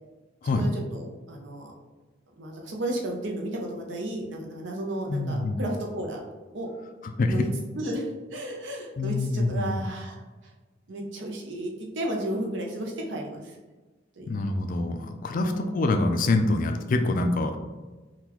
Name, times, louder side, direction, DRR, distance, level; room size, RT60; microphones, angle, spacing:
voice 1, 0.6-1.7 2.4-6.2 6.5-6.7 7.3-7.5 7.7-10.2 10.9-13.6 14.2-14.3 15.3-15.7, right 1 dB, 75° right, 0 dB, 0.7 m, -33 dB
voice 2, 5.1-5.6 7.2-7.3 9.0-9.8 14.3-17.6, left 2 dB, 45° left, 6 dB, 0.3 m, -25 dB
3.7 x 2.3 x 2.9 m, 1.2 s
head